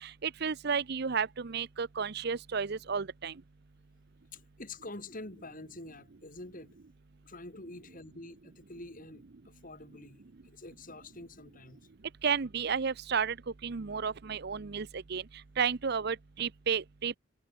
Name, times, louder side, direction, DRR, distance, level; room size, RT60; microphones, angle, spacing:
voice 1, 0.0-3.3 12.2-13.4 13.6-15.2 15.6-17.2, right 6 dB, 55° right, 0.7 m, -32 dB
voice 2, 4.3-6.8 7.2-11.9, left 2 dB, 45° left, 4.6 m, -47 dB
head